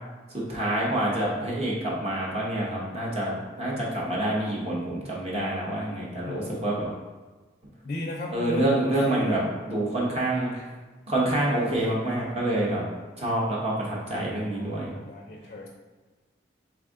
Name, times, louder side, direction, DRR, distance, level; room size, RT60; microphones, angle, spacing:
voice 1, 0.3-6.9 8.3-9.4 9.7-10.6 11.1-12.8 13.2-14.9, right 1 dB, 35° right, -5 dB, 0.9 m, -27 dB
voice 2, 6.3-7.0 7.8-9.4 14.5-15.7, left 1 dB, 40° left, -2 dB, 0.4 m, -35 dB
3.5 x 3.3 x 3.6 m, 1.3 s
head